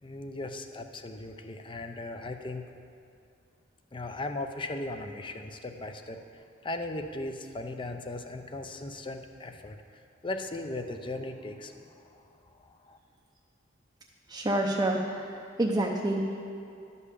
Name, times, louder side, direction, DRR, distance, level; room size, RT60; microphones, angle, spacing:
voice 1, 0.0-2.6 3.9-12.2 12.6-13.0, left 2 dB, 25° left, 6 dB, 0.6 m, -38 dB
voice 2, 14.3-15.3 15.6-16.4, right 1 dB, 20° right, -2 dB, 0.7 m, -27 dB
12.0 x 5.5 x 8.2 m, 2.5 s
head